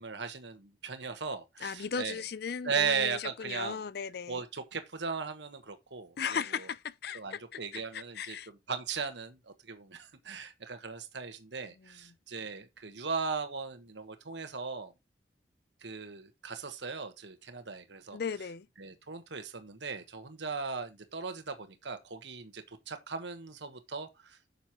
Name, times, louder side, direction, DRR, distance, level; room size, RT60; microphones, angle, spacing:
voice 1, 0.0-2.2 2.6-3.8 4.3-6.7 7.1-14.9 15.8-18.2 18.8-24.4, right 5 dB, 75° right, 1.3 m, -37 dB
voice 2, 1.6-4.4 6.2-8.5 11.8-12.1 18.1-18.7, left 6 dB, 60° left, 0.4 m, -37 dB
10.5 x 6.7 x 3.0 m
head